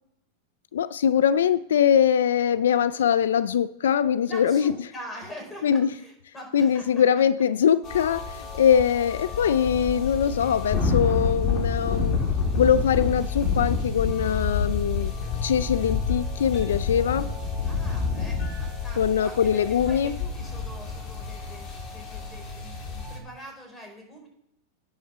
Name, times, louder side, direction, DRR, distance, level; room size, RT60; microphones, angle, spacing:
voice 1, 0.7-4.7 5.6-5.9 6.5-12.2 12.6-15.1 15.4-17.3 19.0-20.2, left 8 dB, 90° left, 0.4 m, -22 dB
voice 2, 4.2-7.0 8.4-8.6 9.3-9.6 17.6-24.3, equal, 15° left, 4.7 m, -44 dB
sound 1, 7.8-23.2, left 5 dB, 35° left, 3.5 m, -29 dB
10.5 x 5.6 x 6.8 m
hypercardioid pair, 130°, 0 cm